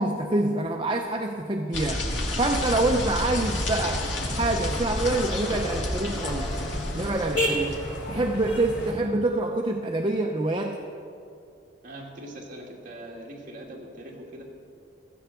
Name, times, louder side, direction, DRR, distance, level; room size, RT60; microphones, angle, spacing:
voice 1, 0.0-2.1 2.4-4.1 4.4-6.6 6.9-7.8 8.1-10.8, right 2 dB, 25° right, 2 dB, 0.7 m, -26 dB
sound 1, 1.7-8.0, left 1 dB, 80° left, 1.9 m, -31 dB
sound 2, 2.6-8.9, equal, 65° left, 2.6 m, -33 dB
voice 2, 11.8-14.4, right 1 dB, 45° right, -3 dB, 2.7 m, -41 dB
16.5 x 14.0 x 4.4 m, 2.4 s
head